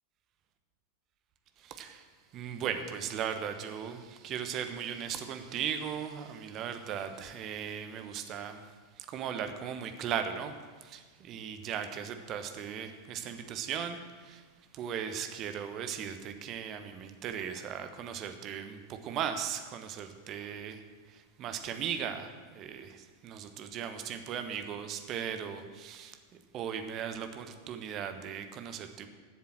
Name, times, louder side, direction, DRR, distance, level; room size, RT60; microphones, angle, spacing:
voice 1, 1.6-2.1 2.3-14.4 14.7-26.2 26.5-29.1, right 8 dB, 35° right, 8 dB, 1.1 m, -38 dB
12.0 x 7.4 x 7.5 m, 1.5 s
figure-of-eight pair, 90°, 0 cm